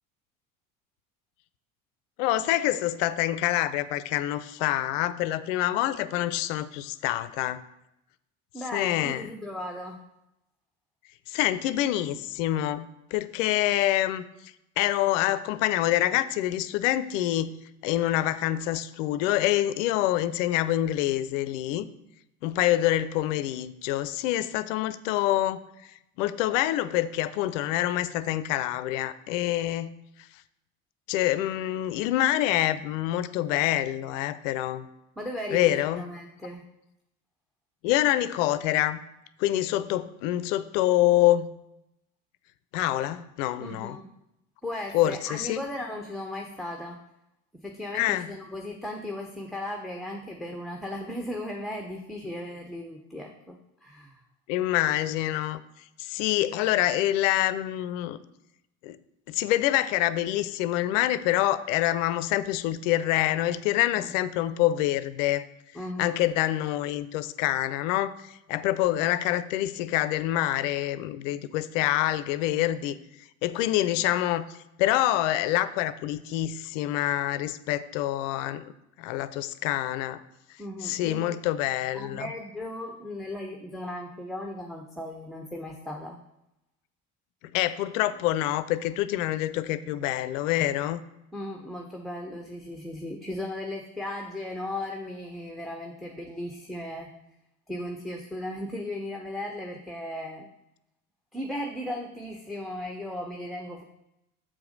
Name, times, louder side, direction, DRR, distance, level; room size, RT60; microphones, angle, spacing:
voice 1, 2.2-7.6 8.7-9.3 11.3-14.2 14.8-17.6 17.8-21.9 22.4-25.6 26.2-29.9 31.1-34.9 35.5-36.0 37.8-39.0 39.4-41.5 42.7-44.0 44.9-45.6 47.9-48.3 54.5-55.6 56.0-58.2 58.8-59.0 59.3-65.5 66.0-73.0 73.4-78.7 79.0-80.2 80.8-82.3 87.5-91.0, left 14 dB, 60° left, 15 dB, 0.5 m, -26 dB
voice 2, 8.5-10.0 35.2-36.6 43.6-44.1 44.6-47.0 47.5-54.2 63.9-64.1 65.7-66.2 80.6-81.4 81.9-86.2 91.3-97.1 97.7-100.5 101.3-103.8, left 1 dB, ahead, 2 dB, 0.8 m, -36 dB
7.4 x 4.8 x 5.2 m, 0.86 s
figure-of-eight pair, 60°, 44 cm